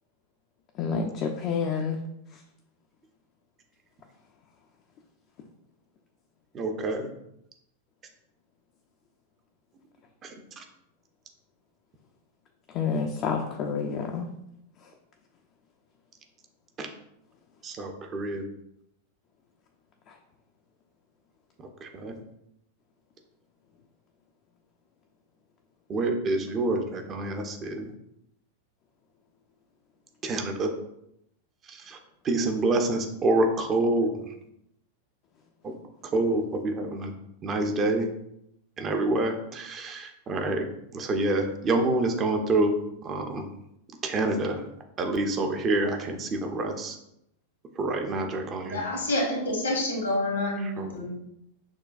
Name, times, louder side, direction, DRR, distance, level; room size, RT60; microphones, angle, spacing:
voice 1, 0.8-2.0 2.3-2.4 12.7-14.3 20.1-20.2, left 5 dB, 35° left, 3 dB, 0.4 m, -29 dB
voice 2, 6.5-7.1 10.2-10.3 10.6-10.7 16.8-16.9 17.6-18.4 21.8-22.1 25.9-27.9 30.2-30.7 31.7-32.0 32.2-34.1 35.6-35.7 36.1-37.1 37.4-38.1 38.8-40.6 40.9-42.7 43.0-43.5 44.0-44.6 45.0-47.0 47.8-48.8 50.8-51.0, right 2 dB, 25° right, 4 dB, 0.5 m, -27 dB
voice 3, 48.6-51.1, left 1 dB, 70° left, 0 dB, 1.1 m, -28 dB
6.1 x 2.2 x 2.4 m, 0.78 s
figure-of-eight pair, 90°, 0 cm